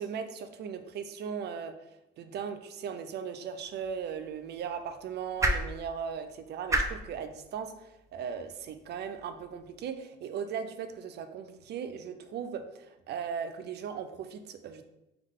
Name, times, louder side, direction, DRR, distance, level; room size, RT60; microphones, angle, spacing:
voice 1, 0.0-14.8, right 7 dB, 65° right, 9 dB, 0.5 m, -38 dB
sound 1, 3.6-9.8, right 1 dB, 15° right, 0.5 m, -36 dB
3.6 x 3.4 x 3.6 m, 0.89 s
cardioid pair, 110°, 19 cm